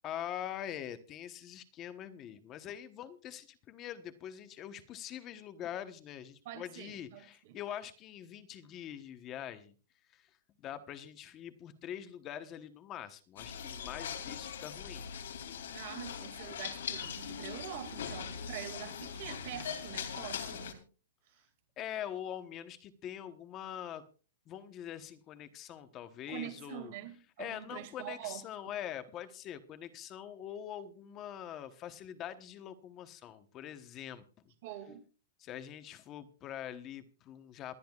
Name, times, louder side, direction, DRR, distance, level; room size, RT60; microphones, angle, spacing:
voice 1, 0.0-9.7 10.1-15.1 21.8-24.0 24.5-26.9 27.4-34.2 35.4-37.8, left 10 dB, 25° left, 1.1 m, -44 dB
voice 2, 6.5-7.6 15.7-20.8 26.3-28.4 34.6-35.0, right 11 dB, 45° right, 2.3 m, -45 dB
sound 1, 13.4-20.7, left 7 dB, 85° left, 2.9 m, -41 dB
28.0 x 10.0 x 2.4 m
hypercardioid pair, 160°, 0 cm